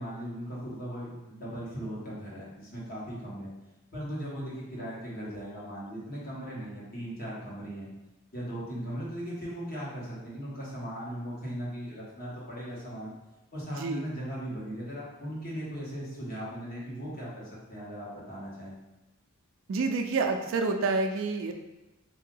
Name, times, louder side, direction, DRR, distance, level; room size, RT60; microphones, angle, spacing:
voice 1, 0.0-3.5 3.9-7.9 8.3-13.1 13.5-18.7, equal, 45° left, -6 dB, 1.3 m, -38 dB
voice 2, 13.7-14.1 19.7-21.5, right 3 dB, 65° right, 4 dB, 0.4 m, -28 dB
3.7 x 2.7 x 3.7 m, 1.0 s
head